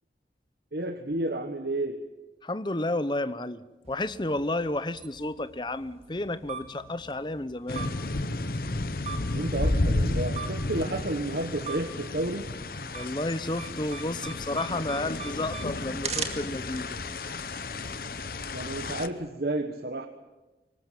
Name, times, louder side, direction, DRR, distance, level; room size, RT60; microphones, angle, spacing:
voice 1, 0.7-2.0 9.3-12.5 18.5-20.1, right 1 dB, 60° right, 7 dB, 1.3 m, -31 dB
voice 2, 2.4-7.9 12.9-17.0, left 2 dB, 25° left, 14 dB, 0.8 m, -31 dB
sound 1, 3.8-17.8, right 6 dB, 35° right, 2.3 m, -42 dB
sound 2, 7.7-19.1, left 2 dB, 55° left, 1.0 m, -32 dB
23.5 x 19.5 x 9.1 m, 1.1 s
head